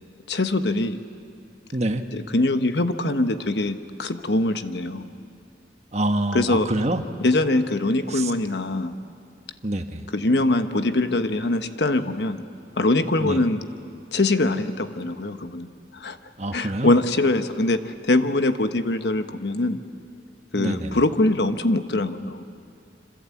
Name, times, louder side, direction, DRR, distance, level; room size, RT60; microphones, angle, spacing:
voice 1, 0.3-1.0 2.1-5.1 6.3-6.7 7.2-9.0 10.1-12.4 12.8-13.6 14.1-15.7 15.9-16.2 16.5-19.8 20.5-22.4, left 2 dB, 75° left, 9 dB, 1.2 m, -23 dB
voice 2, 1.7-2.0 5.9-7.0 8.1-8.3 9.6-10.0 13.2-13.4 16.4-16.9 20.5-21.0, right 1 dB, 40° right, 6 dB, 1.3 m, -26 dB
26.5 x 26.0 x 8.5 m, 2.5 s
head